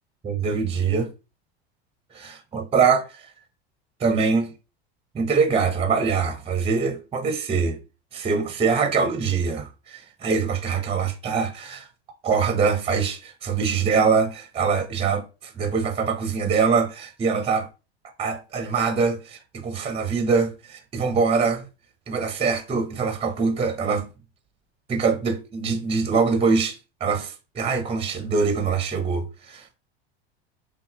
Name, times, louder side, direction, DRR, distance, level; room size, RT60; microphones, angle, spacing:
voice 1, 0.2-1.1 2.1-3.2 4.0-4.5 5.1-7.8 8.1-11.9 12.2-17.7 18.2-21.6 22.1-24.1 24.9-29.7, right 5 dB, 15° right, 0.8 m, -23 dB
5.6 x 2.3 x 2.9 m
hypercardioid pair, 90°, 32 cm